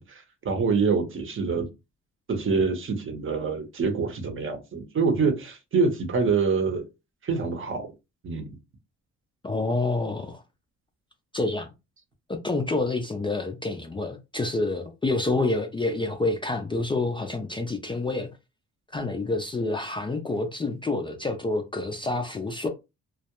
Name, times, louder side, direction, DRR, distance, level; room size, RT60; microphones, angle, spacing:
voice 1, 0.0-1.7 2.3-6.8 7.2-7.9 8.2-8.6, right 4 dB, 45° right, 0.7 m, -26 dB
voice 2, 9.4-10.4 11.3-11.7 12.3-18.3 18.9-22.7, left 2 dB, 15° left, 0.4 m, -28 dB
2.3 x 2.1 x 2.8 m
cardioid pair, 90°, 30 cm